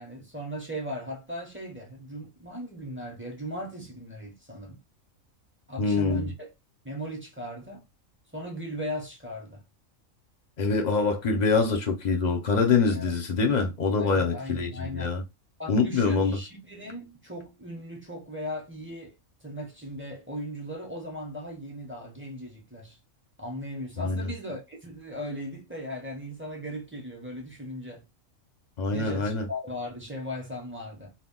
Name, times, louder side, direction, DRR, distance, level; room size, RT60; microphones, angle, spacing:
voice 1, 0.0-4.8 5.7-6.5 6.8-7.8 8.3-9.6 12.9-13.1 14.0-15.2 15.6-19.1 19.4-23.0 23.4-28.0 28.9-31.1, equal, 15° right, 0.5 m, -38 dB
voice 2, 5.8-6.3 10.6-15.2 15.7-16.4 24.0-24.3 28.8-29.5, left 4 dB, 45° left, 0.6 m, -25 dB
2.3 x 2.3 x 3.6 m
omnidirectional pair, 1.4 m